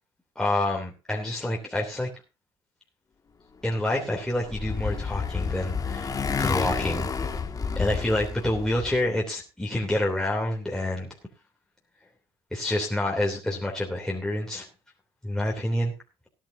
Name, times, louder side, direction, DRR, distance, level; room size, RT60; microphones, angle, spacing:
voice 1, 0.3-2.1 3.6-7.1 7.8-11.1 12.5-14.7 15.2-15.9, left 1 dB, 5° left, -2 dB, 3.2 m, -28 dB
Motorcycle, 4.0-9.0, left 5 dB, 30° left, 2.2 m, -30 dB
18.5 x 10.5 x 2.8 m, 0.30 s
cardioid pair, 105°, 12 cm